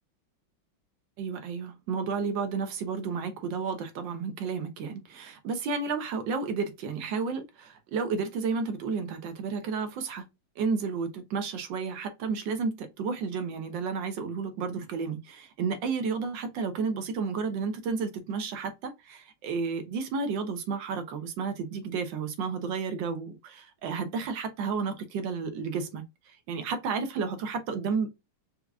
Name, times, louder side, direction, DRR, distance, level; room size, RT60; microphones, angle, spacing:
voice 1, 1.2-10.3 10.6-28.2, right 5 dB, 70° right, 1.4 m, -32 dB
4.5 x 2.5 x 2.3 m
omnidirectional pair, 2.1 m